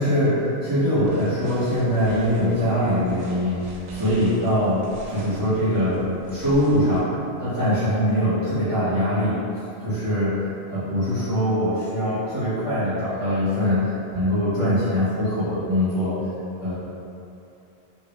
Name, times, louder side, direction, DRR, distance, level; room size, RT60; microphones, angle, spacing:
voice 1, 0.0-9.3 9.8-10.4 10.7-16.2 16.6-16.7, equal, 25° right, -15 dB, 1.3 m, -22 dB
sound 1, 1.0-7.0, right 2 dB, 75° right, 0.9 m, -43 dB
2.8 x 2.6 x 3.1 m, 2.7 s
omnidirectional pair, 1.2 m